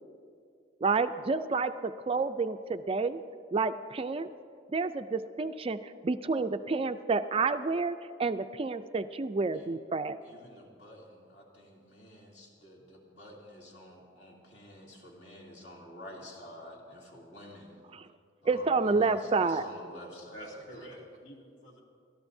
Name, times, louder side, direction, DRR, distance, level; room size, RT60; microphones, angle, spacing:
voice 1, 0.8-3.2 3.5-4.3 4.7-10.2 17.9-18.1 18.5-19.6, right 4 dB, 30° right, 10 dB, 0.4 m, -29 dB
voice 2, 10.2-17.8 18.4-20.9, left 1 dB, 60° left, -3 dB, 2.9 m, -50 dB
voice 3, 20.3-21.8, right 1 dB, 75° left, -2 dB, 2.6 m, -47 dB
29.5 x 13.0 x 2.7 m, 2.3 s
head